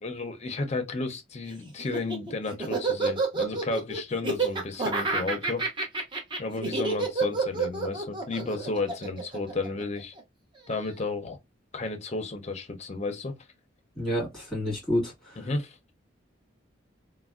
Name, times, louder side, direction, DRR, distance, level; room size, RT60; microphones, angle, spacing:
voice 1, 0.0-5.6 6.4-10.1 10.7-11.4 11.7-13.3 15.4-15.8, left 3 dB, 35° left, 0.5 m, -32 dB
Laughter, 1.8-10.2, right 3 dB, 25° right, 0.7 m, -29 dB
voice 2, 13.9-15.5, left 1 dB, 5° left, 1.9 m, -29 dB
3.3 x 2.1 x 2.3 m
head